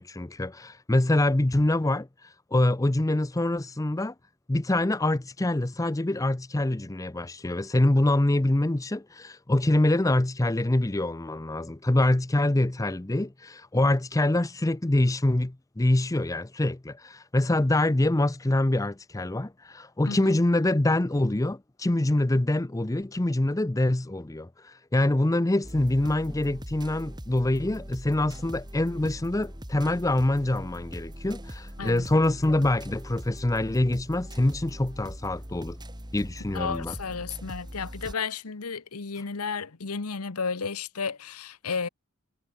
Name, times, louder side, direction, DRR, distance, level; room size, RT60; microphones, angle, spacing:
voice 1, 0.0-2.1 2.5-4.1 4.5-35.8 36.1-36.9, left 1 dB, 15° left, 0.6 m, -25 dB
sound 1, 25.6-38.1, equal, 20° right, 5.1 m, -41 dB
voice 2, 36.5-41.9, left 5 dB, 85° left, 1.1 m, -33 dB
head